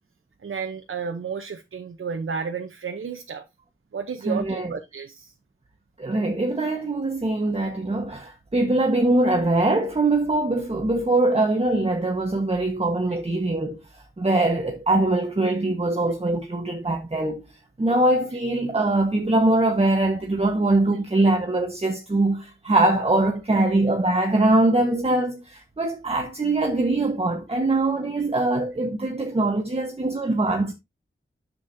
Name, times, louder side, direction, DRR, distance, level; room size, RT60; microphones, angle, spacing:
voice 1, 0.4-3.4 3.9-5.3 27.5-27.6, right 6 dB, 80° right, 0.9 m, -32 dB
voice 2, 4.3-4.7 6.0-13.8 14.2-17.4 17.8-30.7, right 2 dB, 30° right, 1.4 m, -22 dB
9.7 x 7.4 x 2.7 m
wide cardioid pair, 75°, 21 cm